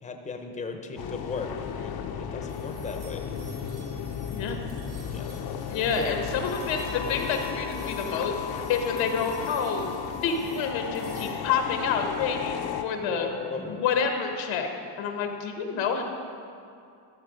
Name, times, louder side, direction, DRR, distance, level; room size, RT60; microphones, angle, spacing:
voice 1, 0.0-1.5 1.7-1.9 2.2-3.2 5.1-5.3 6.0-6.2 13.1-13.8, left 4 dB, 15° left, 4 dB, 0.7 m, -36 dB
sound 1, 1.0-12.8, left 8 dB, 55° left, 0.8 m, -34 dB
sound 2, 2.5-11.3, right 3 dB, 90° right, 2.2 m, -47 dB
voice 2, 4.3-4.6 5.7-8.3 8.7-13.3 13.7-14.7 15.0-16.0, left 6 dB, 80° left, 4 dB, 1.4 m, -28 dB
14.0 x 6.4 x 5.0 m, 2.4 s
cardioid pair, 130°, 44 cm